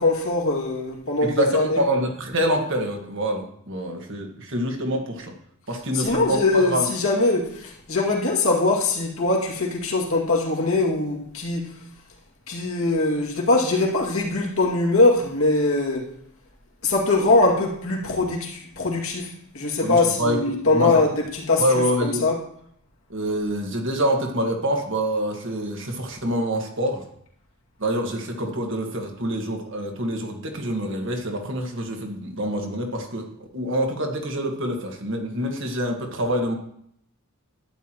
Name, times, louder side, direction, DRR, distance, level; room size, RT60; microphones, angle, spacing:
voice 1, 0.0-1.9 5.9-11.7 12.5-16.1 16.8-22.4, left 2 dB, 65° left, -2 dB, 2.3 m, -22 dB
voice 2, 1.2-5.3 5.7-6.9 19.8-20.9 21.6-22.2 23.1-27.0 27.8-33.2 33.5-36.5, equal, 60° right, 2 dB, 1.6 m, -26 dB
12.0 x 9.5 x 3.0 m, 0.69 s
head